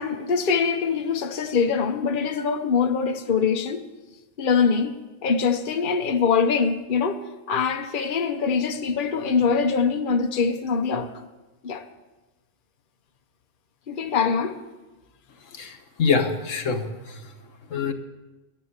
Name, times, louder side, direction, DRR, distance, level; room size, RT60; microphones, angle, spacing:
voice 1, 0.0-3.8 4.4-4.9 5.2-11.2 11.6-11.8 13.9-14.6, left 5 dB, 45° left, 1.0 m, -23 dB
voice 2, 15.6-16.9 17.7-17.9, left 5 dB, 80° left, 1.6 m, -24 dB
13.0 x 10.0 x 8.1 m
omnidirectional pair, 1.3 m